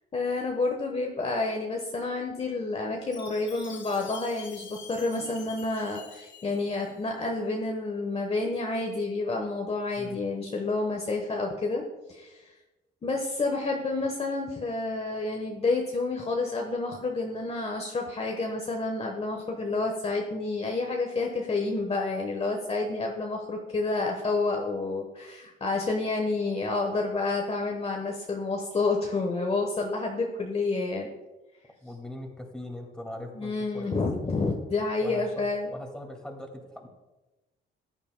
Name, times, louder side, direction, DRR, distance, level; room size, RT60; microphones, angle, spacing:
voice 1, 0.1-11.8 12.1-12.4 13.0-31.1 33.3-35.7, left 3 dB, 30° left, 1 dB, 1.1 m, -29 dB
Chime, 3.1-7.2, left 6 dB, 75° left, 3.0 m, -47 dB
voice 2, 31.8-34.0 35.0-36.9, left 1 dB, 5° left, 1 dB, 2.2 m, -41 dB
14.5 x 9.8 x 2.2 m, 1.1 s
cardioid pair, 90°, 20 cm